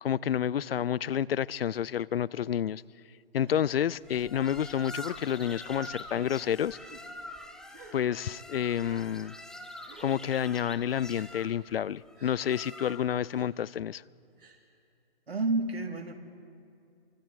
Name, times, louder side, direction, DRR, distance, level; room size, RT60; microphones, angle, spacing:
voice 1, 0.0-2.8 3.3-6.8 7.9-9.3 10.0-14.0, left 9 dB, 75° left, 0.5 m, -29 dB
Gasp, 3.4-3.6 4.5-4.6 5.4-5.8 6.7-7.0 7.7-8.0 8.8-9.0 9.9-10.2 11.1-11.3 12.2-12.4 13.3-13.5 14.4-14.6, right 5 dB, 60° right, 3.3 m, -53 dB
sound 1, 4.0-13.3, left 1 dB, ahead, 0.7 m, -45 dB
voice 2, 15.3-16.1, right 2 dB, 85° right, 2.4 m, -29 dB
28.0 x 24.5 x 4.7 m
hypercardioid pair, 135°, 30 cm